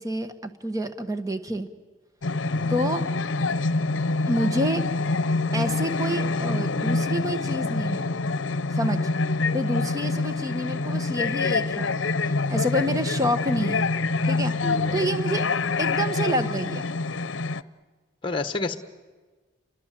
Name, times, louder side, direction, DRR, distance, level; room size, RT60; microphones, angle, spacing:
voice 1, 0.0-1.7 2.7-3.0 4.3-4.8 5.5-8.0 8.7-9.1 9.5-11.9 12.2-13.8 14.2-14.5 14.9-15.5 15.8-16.8, equal, 20° right, 8 dB, 1.4 m, -28 dB
sound 1, 2.2-17.6, left 3 dB, 80° left, 0.7 m, -26 dB
voice 2, 14.6-15.0 18.2-18.8, left 3 dB, 25° left, 8 dB, 1.3 m, -30 dB
29.5 x 23.5 x 7.7 m, 1.3 s
head